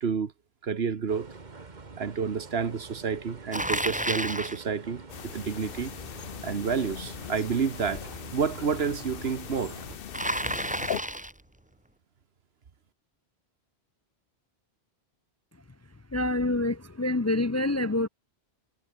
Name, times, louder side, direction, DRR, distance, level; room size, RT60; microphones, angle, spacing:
voice 1, 0.0-0.3 0.6-1.3 2.0-5.0 5.3-5.9 6.4-9.8, right 6 dB, 70° right, 1.5 m, -29 dB
sound 1, 1.1-10.0, right 4 dB, 45° right, 1.7 m, -45 dB
Bicycle, 3.5-4.6 10.1-11.4, right 1 dB, 5° right, 1.6 m, -30 dB
sound 2, 5.1-11.0, left 9 dB, 60° left, 0.9 m, -39 dB
voice 2, 16.1-18.1, left 2 dB, 20° left, 0.4 m, -26 dB
omnidirectional pair, 1.1 m